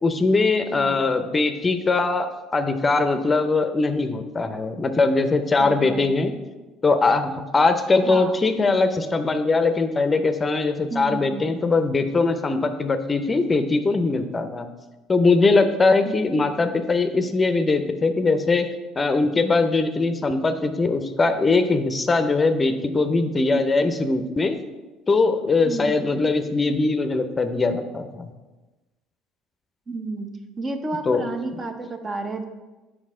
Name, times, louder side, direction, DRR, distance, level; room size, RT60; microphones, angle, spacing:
voice 1, 0.0-6.3 6.8-14.7 15.1-18.7 19.0-24.6 25.1-28.3 31.1-31.2, left 3 dB, 25° left, 8 dB, 0.6 m, -21 dB
voice 2, 5.6-6.2 8.0-8.3 10.9-11.6 16.0-16.4 25.6-26.1 29.9-30.3 30.6-32.4, right 3 dB, 35° right, 6 dB, 0.8 m, -31 dB
7.3 x 4.9 x 3.7 m, 1.1 s
hypercardioid pair, 70°, 0 cm